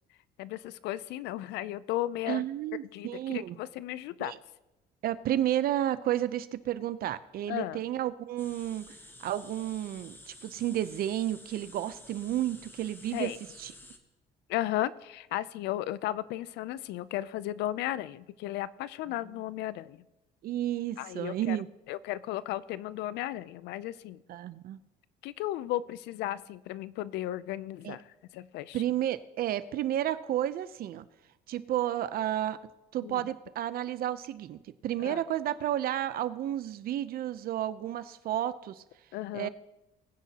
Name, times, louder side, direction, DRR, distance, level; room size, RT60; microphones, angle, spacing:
voice 1, 0.4-2.4 2.9-4.4 7.5-7.8 13.1-13.4 14.5-20.0 21.0-21.6 21.9-24.2 25.2-28.1 28.3-28.8 33.0-33.2 35.0-35.2 39.1-39.5, left 14 dB, 85° left, 18 dB, 0.5 m, -35 dB
voice 2, 2.3-3.6 4.2-4.4 5.0-13.3 13.6-13.7 20.4-21.7 24.3-24.8 27.8-28.0 28.7-31.1 31.5-32.6 32.9-38.8 39.3-39.5, right 12 dB, 60° right, 14 dB, 0.6 m, -32 dB
sound 1, 8.4-14.0, left 1 dB, 10° left, 1.2 m, -51 dB
20.5 x 9.9 x 2.9 m, 0.98 s
cardioid pair, 110°, 17 cm